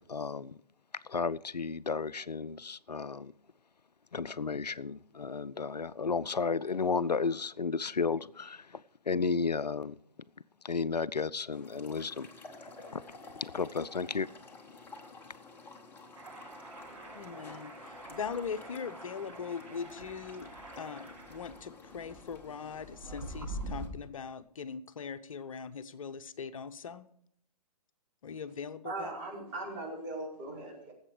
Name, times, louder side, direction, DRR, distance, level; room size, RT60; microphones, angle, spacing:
voice 1, 0.1-0.6 1.0-3.3 4.1-10.0 10.6-12.3 12.9-14.3, left 5 dB, 80° left, 0.5 m, -33 dB
sound 1, 11.5-23.9, left 3 dB, 10° left, 1.2 m, -52 dB
sound 2, 16.1-23.9, right 2 dB, 55° right, 6.2 m, -45 dB
voice 2, 17.2-17.7 18.1-20.5 20.8-27.1 28.2-29.1, left 6 dB, 55° left, 0.8 m, -40 dB
voice 3, 28.8-30.9, right 2 dB, 30° right, 4.9 m, -39 dB
18.0 x 8.0 x 4.8 m
figure-of-eight pair, 125°, 21 cm